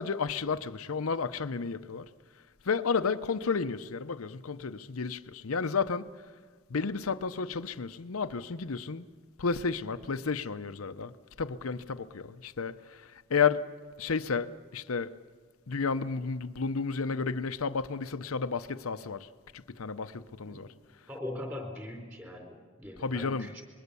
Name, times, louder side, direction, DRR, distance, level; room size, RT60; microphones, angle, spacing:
voice 1, 0.0-2.1 2.7-6.1 6.7-9.0 9.4-11.1 11.4-13.7 14.0-15.1 15.7-19.3 19.5-20.7 23.0-23.5, left 5 dB, 90° left, 0.7 m, -32 dB
voice 2, 21.1-23.6, left 1 dB, 10° right, 4.0 m, -41 dB
26.0 x 22.0 x 6.9 m
head